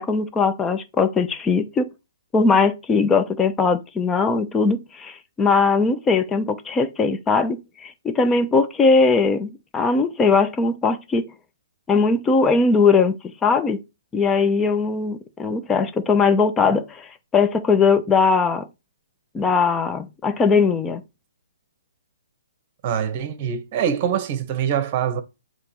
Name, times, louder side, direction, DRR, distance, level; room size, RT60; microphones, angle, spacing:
voice 1, 0.0-1.9 2.3-11.3 11.9-13.2 13.4-13.8 14.1-18.7 19.3-21.0, left 4 dB, 15° left, 0.6 m, -20 dB
voice 2, 22.8-25.2, right 8 dB, 35° right, 1.2 m, -24 dB
7.6 x 3.1 x 4.4 m
hypercardioid pair, 140°, 0 cm